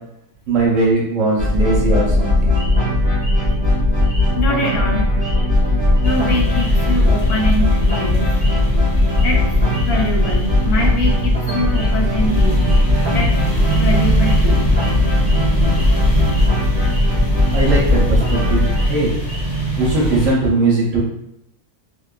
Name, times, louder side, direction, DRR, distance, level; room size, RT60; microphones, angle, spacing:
voice 1, 0.5-2.5 17.5-18.2 18.5-19.1 19.8-21.0, right 2 dB, 65° right, -3 dB, 0.9 m, -18 dB
sound 1, 1.4-18.9, left 2 dB, 10° right, 1.1 m, -17 dB
sound 2, 2.6-2.8 3.2-3.5 4.0-4.3 4.6-4.8 5.2-5.7 6.0-6.2 6.6-7.5 7.8-8.0 8.4-8.6 9.1-9.4 9.7-9.9 10.2-10.5 11.0-11.2 11.5-11.9 12.5-12.8 13.1-13.3 13.6-13.8 14.2-15.9 16.2-16.4 16.8-17.7 18.0-19.6, equal, 30° right, 0.8 m, -37 dB
voice 2, 4.3-5.1 6.0-8.3 9.2-9.4 9.8-12.6 13.1-13.3 13.8-14.7, left 1 dB, 80° left, 0 dB, 1.1 m, -23 dB
sound 3, 6.0-20.3, right 2 dB, 45° left, 0.7 m, -23 dB
2.6 x 2.2 x 2.3 m, 0.78 s
omnidirectional pair, 1.6 m